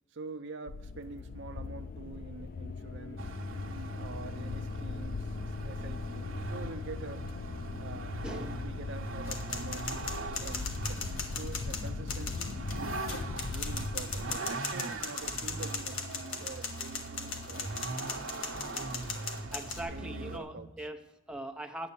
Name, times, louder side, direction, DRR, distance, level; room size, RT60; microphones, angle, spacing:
voice 1, 0.1-3.4 3.9-5.4 5.6-7.3 7.8-9.9 10.4-11.1 11.4-13.0 13.5-17.9 18.8-19.3 19.9-20.7, right 3 dB, 55° right, 0.5 m, -46 dB
sound 1, 0.7-14.4, left 4 dB, 40° left, 0.3 m, -40 dB
Vehicle, 3.2-20.4, right 2 dB, 70° right, 1.0 m, -41 dB
voice 2, 8.2-8.6 19.5-21.9, right 1 dB, 5° right, 0.6 m, -41 dB
sound 2, 9.3-19.8, left 5 dB, 70° left, 1.4 m, -39 dB
9.5 x 7.5 x 6.9 m
head